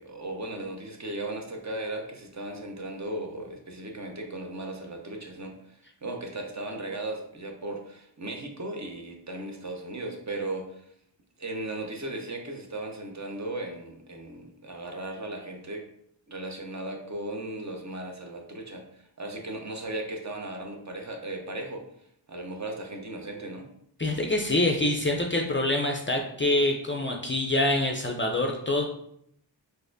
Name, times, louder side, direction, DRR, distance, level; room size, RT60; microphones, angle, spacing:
voice 1, 0.0-10.9 11.4-15.8 16.3-23.7, right 2 dB, 40° right, 2 dB, 0.7 m, -37 dB
voice 2, 24.0-28.8, left 1 dB, 25° left, 2 dB, 0.4 m, -25 dB
4.0 x 2.6 x 2.6 m, 0.71 s
cardioid pair, 50°, 46 cm